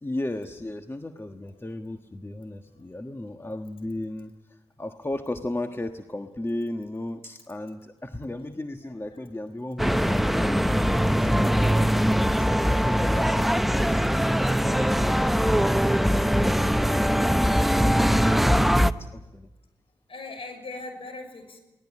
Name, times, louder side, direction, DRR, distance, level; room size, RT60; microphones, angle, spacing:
voice 1, 0.0-10.7 11.1-12.3 12.7-14.1 14.6-16.6 19.1-19.5, left 1 dB, 20° left, 6 dB, 1.5 m, -35 dB
sound 1, 9.8-18.9, equal, ahead, 0.9 m, -22 dB
voice 2, 20.1-21.6, left 3 dB, 55° left, 7 dB, 6.2 m, -39 dB
23.5 x 18.0 x 8.6 m, 1.0 s
supercardioid pair, 40°, 11 cm